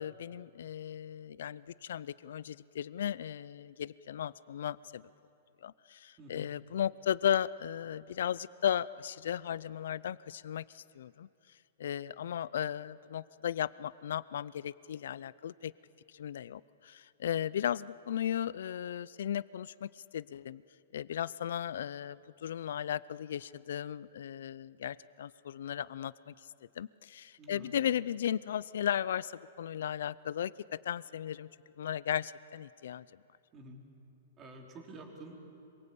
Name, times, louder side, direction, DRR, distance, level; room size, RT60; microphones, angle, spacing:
voice 1, 0.0-5.0 5.6-11.3 11.8-15.7 16.1-20.6 20.9-26.3 26.8-31.5 31.8-33.1, left 10 dB, 70° left, 20 dB, 0.5 m, -36 dB
voice 2, 6.2-6.5 27.4-27.7 33.5-33.8 34.4-35.4, right 2 dB, 20° right, 1 dB, 3.6 m, -49 dB
26.0 x 23.0 x 8.4 m, 2.8 s
hypercardioid pair, 160°, 0 cm